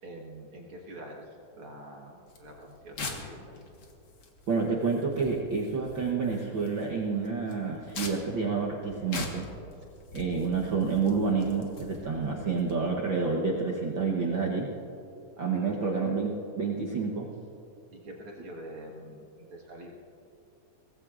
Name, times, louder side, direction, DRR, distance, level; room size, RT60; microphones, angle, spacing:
voice 1, 0.0-3.6 15.6-15.7 17.9-19.9, right 1 dB, 50° right, -1 dB, 1.8 m, -45 dB
sound 1, 2.3-12.7, left 3 dB, 50° left, 1.8 m, -43 dB
voice 2, 4.5-9.5 10.1-14.7 15.4-17.3, right 4 dB, 85° right, -1 dB, 1.0 m, -29 dB
23.5 x 18.5 x 2.5 m, 2.8 s
omnidirectional pair, 3.8 m